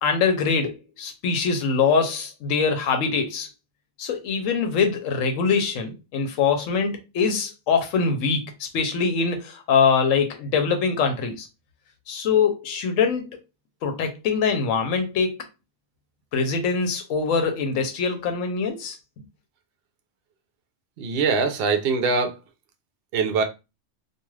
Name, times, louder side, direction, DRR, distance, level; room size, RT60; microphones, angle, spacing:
voice 1, 0.0-3.5 4.0-11.5 12.1-13.4 13.8-15.4 16.3-19.0, left 5 dB, 80° left, 1.0 m, -23 dB
voice 2, 21.0-22.4 23.1-23.4, right 4 dB, 60° right, 0.7 m, -22 dB
2.5 x 2.3 x 3.1 m
omnidirectional pair, 1.3 m